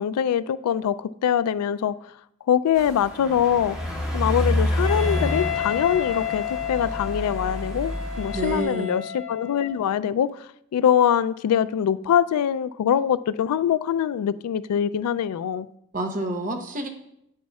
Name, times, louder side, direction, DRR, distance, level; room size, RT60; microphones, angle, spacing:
voice 1, 0.0-2.0 2.5-3.8 4.1-15.7, left 9 dB, 90° left, 0.3 m, -23 dB
sound 1, 2.7-8.6, left 1 dB, 5° right, 1.5 m, -28 dB
Wind instrument woodwind instrument, 4.8-9.8, left 10 dB, 55° left, 0.9 m, -32 dB
voice 2, 8.3-9.0 15.9-16.9, right 1 dB, 35° right, 0.8 m, -28 dB
8.4 x 8.4 x 2.3 m
head